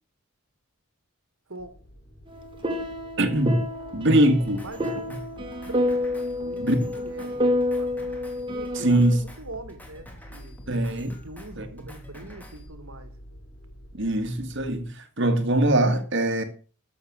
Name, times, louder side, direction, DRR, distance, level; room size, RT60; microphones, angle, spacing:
sound 1, 1.6-14.8, equal, 45° left, 3.7 m, -48 dB
sound 2, 2.3-9.2, left 1 dB, 25° right, 2.1 m, -29 dB
voice 1, 3.2-3.6 3.9-5.2 6.6-6.8 8.7-9.2 10.7-11.2 11.6-11.8 13.9-16.4, right 1 dB, 55° right, 2.0 m, -23 dB
Drum kit, 4.3-12.7, left 1 dB, 10° left, 2.8 m, -50 dB
voice 2, 4.6-5.2 5.6-6.0 6.4-8.1 8.5-10.6 11.2-13.1, right 2 dB, 75° right, 2.2 m, -42 dB
13.5 x 7.2 x 6.4 m
head